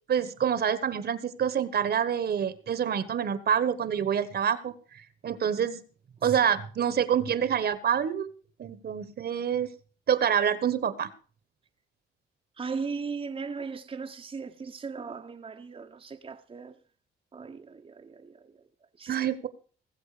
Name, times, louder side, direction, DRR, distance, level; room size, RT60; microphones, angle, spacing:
voice 1, 0.1-5.8 6.2-8.3 8.6-9.7 10.1-11.1 19.1-19.5, right 8 dB, 55° right, 1.3 m, -27 dB
voice 2, 12.6-16.7 17.3-18.4 19.0-19.2, right 5 dB, 30° right, 0.9 m, -37 dB
20.0 x 7.7 x 5.0 m
cardioid pair, 90°, 20 cm